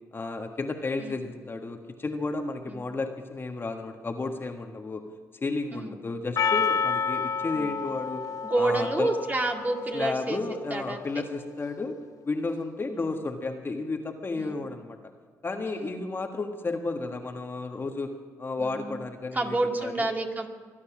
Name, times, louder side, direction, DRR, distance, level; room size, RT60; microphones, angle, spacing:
voice 1, 0.1-5.0 5.4-8.2 8.6-9.1 9.9-12.0 12.2-15.0 15.4-18.1 18.4-20.1, left 3 dB, 35° left, 4 dB, 1.6 m, -32 dB
Percussion, 6.4-10.7, left 6 dB, 55° left, 0.5 m, -30 dB
voice 2, 8.4-10.4 10.7-11.1 12.8-13.0 14.4-14.6 15.7-15.9 18.6-19.0 19.3-20.5, right 2 dB, 25° right, 2 dB, 2.1 m, -29 dB
24.0 x 9.6 x 6.1 m, 1.5 s
cardioid pair, 80°, 7 cm